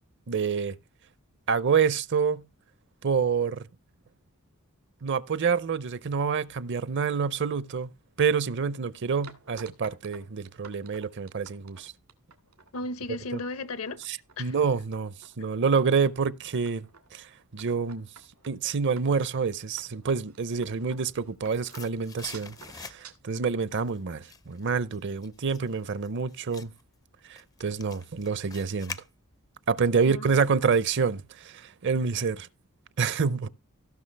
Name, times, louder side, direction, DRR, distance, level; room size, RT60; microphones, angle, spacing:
voice 1, 0.3-0.8 1.5-2.4 3.0-3.7 5.0-7.9 8.2-11.9 14.0-16.9 17.1-18.1 18.4-26.7 27.3-29.0 29.7-32.5 33.0-33.5, right 5 dB, 55° right, 0.6 m, -27 dB
sound 1, 9.2-12.7 13.1-13.5 13.9-14.4 14.9-15.4 15.8-16.2 16.7-17.1 17.6-23.1, right 5 dB, 90° right, 2.3 m, -52 dB
voice 2, 12.7-14.0 14.4-14.6 30.0-30.4, left 2 dB, 70° left, 0.9 m, -35 dB
sound 2, 21.2-23.4 23.7-29.6 29.9-30.0, left 4 dB, 15° left, 0.4 m, -46 dB
16.5 x 6.1 x 3.3 m
head